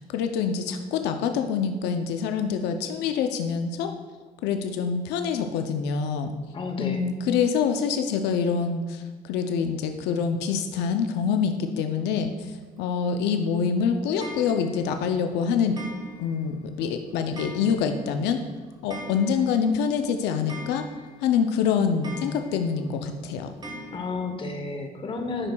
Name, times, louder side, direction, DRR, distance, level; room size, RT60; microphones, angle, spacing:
voice 1, 0.0-3.9 4.4-6.3 6.8-15.8 16.2-18.4 18.8-20.8 21.2-23.5, left 6 dB, 85° left, 6 dB, 0.5 m, -26 dB
voice 2, 6.5-7.0 23.9-25.5, left 3 dB, 30° left, 4 dB, 0.9 m, -31 dB
Clock, 14.2-14.9 15.8-16.5 16.8-16.9 17.4-18.1 18.4-18.5 18.7-19.7 20.0-20.1 20.5-21.3 22.0-22.8 23.6-24.1, right 1 dB, 25° right, 1.1 m, -41 dB
8.7 x 6.0 x 2.2 m, 1.3 s
cardioid pair, 110°, 17 cm